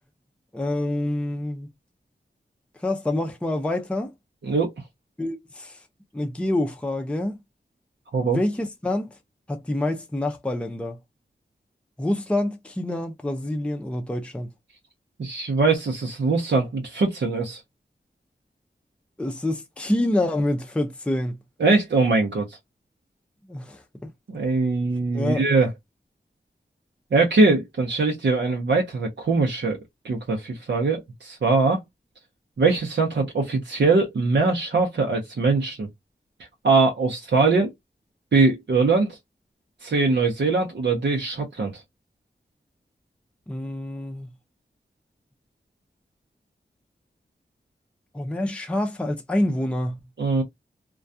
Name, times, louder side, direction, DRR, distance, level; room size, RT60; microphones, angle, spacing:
voice 1, 0.5-1.7 2.8-4.1 5.2-5.8 6.1-7.4 8.2-9.1 9.5-11.0 12.0-14.5 19.2-21.4 23.5-24.1 25.1-25.5 43.5-44.3 48.1-50.0, left 1 dB, 5° left, 0.5 m, -27 dB
voice 2, 15.2-17.6 21.6-22.4 24.3-25.7 27.1-29.8 30.0-31.8 32.6-35.9 36.6-37.7 38.3-39.2 39.8-41.8 50.2-50.4, right 3 dB, 80° right, 0.7 m, -22 dB
2.3 x 2.2 x 2.6 m
wide cardioid pair, 75°, 18 cm